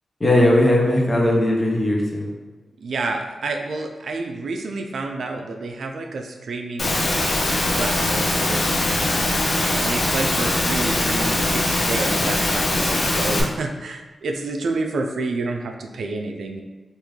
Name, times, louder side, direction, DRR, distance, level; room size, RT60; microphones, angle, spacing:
voice 1, 0.2-2.3, left 1 dB, 25° left, -2 dB, 0.7 m, -18 dB
voice 2, 2.8-7.1 7.7-8.9 9.7-16.6, right 3 dB, 80° right, 4 dB, 0.3 m, -29 dB
Engine / Mechanisms, 6.8-13.4, left 2 dB, 55° left, 0.6 m, -21 dB
3.5 x 2.5 x 3.1 m, 1.2 s
wide cardioid pair, 95°, 0 cm